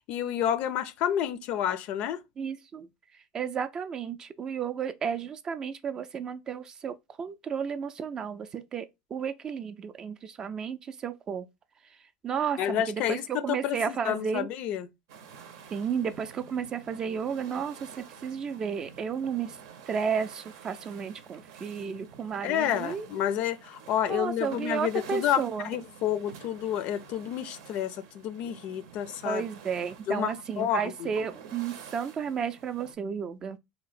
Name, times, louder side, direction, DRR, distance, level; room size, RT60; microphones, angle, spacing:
voice 1, 0.1-2.2 12.6-14.9 22.4-29.4 30.1-31.1, left 10 dB, 55° left, 0.4 m, -30 dB
voice 2, 2.4-2.9 3.3-11.5 12.2-14.5 15.7-19.6 19.9-23.1 24.1-25.7 29.2-33.6, right 7 dB, 30° right, 0.4 m, -33 dB
sound 1, 15.1-32.9, right 7 dB, 80° right, 0.7 m, -49 dB
2.8 x 2.1 x 4.1 m
supercardioid pair, 130°, 2 cm